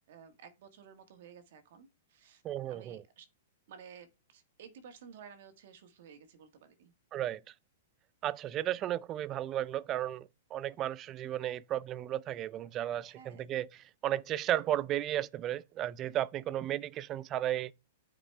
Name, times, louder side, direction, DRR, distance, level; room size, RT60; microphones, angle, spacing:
voice 1, 0.1-2.4 2.7-3.3 3.7-6.9 13.0-13.5, right 7 dB, 60° right, 1.6 m, -54 dB
voice 2, 2.4-3.0 7.1-7.4 8.2-17.7, right 12 dB, 30° right, 0.4 m, -34 dB
9.5 x 4.9 x 3.3 m
hypercardioid pair, 140°, 0 cm